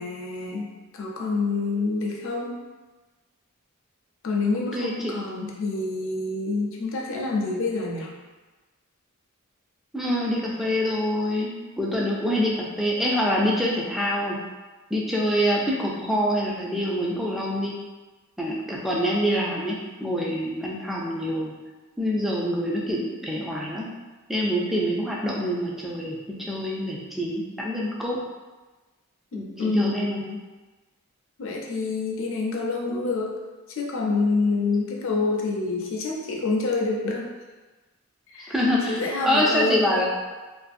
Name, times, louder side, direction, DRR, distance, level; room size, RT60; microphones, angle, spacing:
voice 1, 0.0-2.6 4.2-8.1 29.3-30.4 31.4-33.4 33.7-37.3 38.3-38.5 38.9-40.0, left 3 dB, 60° left, -1 dB, 0.5 m, -27 dB
voice 2, 4.7-5.1 9.9-14.4 14.9-17.7 18.4-21.5 22.0-23.9 24.3-26.2 26.5-28.2 29.3-30.2 38.5-40.0, equal, ahead, -4 dB, 0.3 m, -25 dB
2.5 x 2.3 x 2.4 m, 1.2 s
head